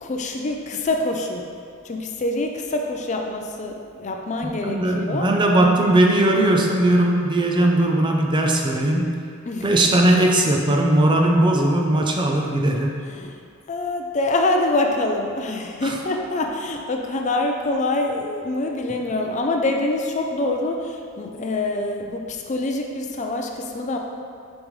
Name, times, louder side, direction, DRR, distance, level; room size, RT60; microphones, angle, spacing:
voice 1, 0.0-1.4 1.8-5.3 9.5-9.7 13.1-13.4 13.7-24.0, left 2 dB, 35° left, 2 dB, 0.4 m, -25 dB
voice 2, 4.6-9.1 9.6-12.9 15.8-16.0, right 1 dB, 20° right, 1 dB, 0.5 m, -18 dB
7.0 x 5.3 x 3.2 m, 2.3 s
head